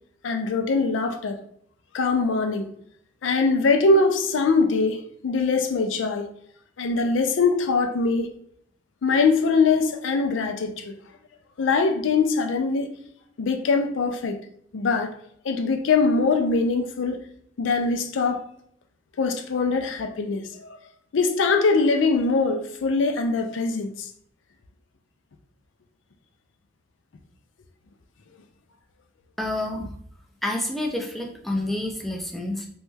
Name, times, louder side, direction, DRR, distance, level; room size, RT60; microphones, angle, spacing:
voice 1, 0.2-1.4 1.9-2.7 3.2-6.3 6.8-8.3 9.0-10.9 11.6-12.9 13.4-14.4 14.7-15.1 15.4-17.2 17.6-18.4 19.2-20.7 21.1-24.1, left 4 dB, 85° left, 0.4 m, -22 dB
voice 2, 29.4-29.9 30.4-32.7, left 1 dB, ahead, 0.4 m, -28 dB
3.1 x 2.2 x 3.2 m
head